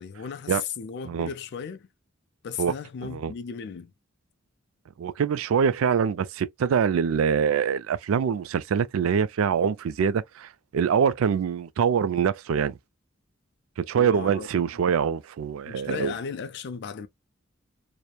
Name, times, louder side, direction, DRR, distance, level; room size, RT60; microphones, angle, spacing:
voice 1, 0.0-1.9 2.4-3.9 13.9-14.5 15.7-17.1, left 6 dB, 55° left, 0.4 m, -35 dB
voice 2, 3.0-3.3 5.0-12.8 13.8-16.1, right 7 dB, 75° right, 0.3 m, -24 dB
2.9 x 2.1 x 2.2 m
head